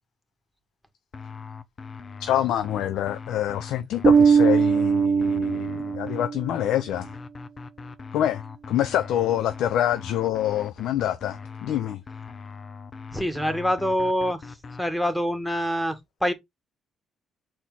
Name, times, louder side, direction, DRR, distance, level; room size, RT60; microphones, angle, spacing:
sound 1, 1.1-14.8, left 5 dB, 40° left, 0.8 m, -40 dB
voice 1, 2.2-7.1 8.1-8.4 8.7-12.0, left 11 dB, 85° left, 0.7 m, -26 dB
Bass guitar, 4.0-6.5, right 6 dB, 45° right, 0.5 m, -20 dB
voice 2, 13.1-16.3, equal, 5° left, 2.0 m, -26 dB
6.5 x 4.3 x 3.9 m
cardioid pair, 90°, 0 cm